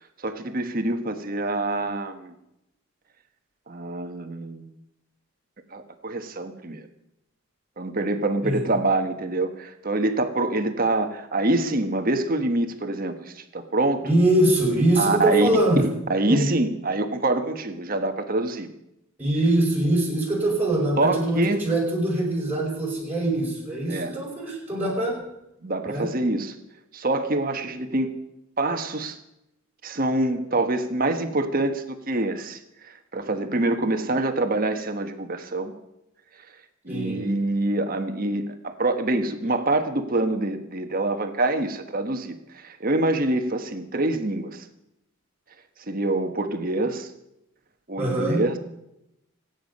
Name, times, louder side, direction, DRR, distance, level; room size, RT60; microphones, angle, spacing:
voice 1, 0.2-2.3 3.7-4.7 5.7-6.9 7.8-14.1 15.0-15.5 16.1-18.7 21.0-21.6 23.9-24.2 25.6-26.5 26.9-28.2 28.6-29.2 29.8-35.7 36.8-44.7 45.9-47.1 47.9-48.6, right 2 dB, 40° right, 7 dB, 1.3 m, -25 dB
voice 2, 14.0-15.9 16.3-16.4 19.2-25.2 25.9-26.1 36.9-37.2 48.0-48.4, right 1 dB, 10° right, -3 dB, 5.1 m, -23 dB
26.5 x 9.2 x 5.4 m, 0.86 s
head